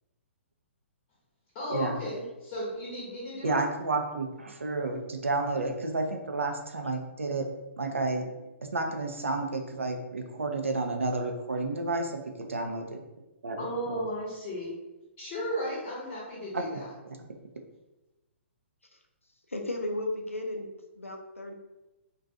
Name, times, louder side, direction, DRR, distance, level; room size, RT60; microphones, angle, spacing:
voice 1, 1.5-3.6 13.6-14.7 15.2-16.9, equal, 25° left, -6 dB, 0.7 m, -35 dB
voice 2, 3.4-7.5 7.7-8.5 8.7-13.0 13.4-14.0 16.5-17.2, right 3 dB, 75° right, 4 dB, 0.4 m, -31 dB
voice 3, 19.5-20.7 21.0-21.5, left 1 dB, 85° left, 3 dB, 0.4 m, -34 dB
2.5 x 2.2 x 2.5 m, 1.0 s
figure-of-eight pair, 120°, 7 cm